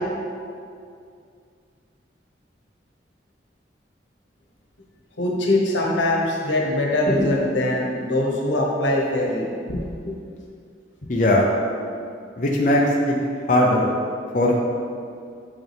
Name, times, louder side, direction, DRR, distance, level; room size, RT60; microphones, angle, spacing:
voice 1, 5.2-9.8 10.0-10.1, left 1 dB, 85° left, -1 dB, 1.1 m, -22 dB
voice 2, 11.1-11.4 12.4-13.2 13.5-13.9 14.3-14.6, left 1 dB, 45° left, -2 dB, 0.6 m, -19 dB
6.6 x 5.9 x 3.5 m, 2.3 s
head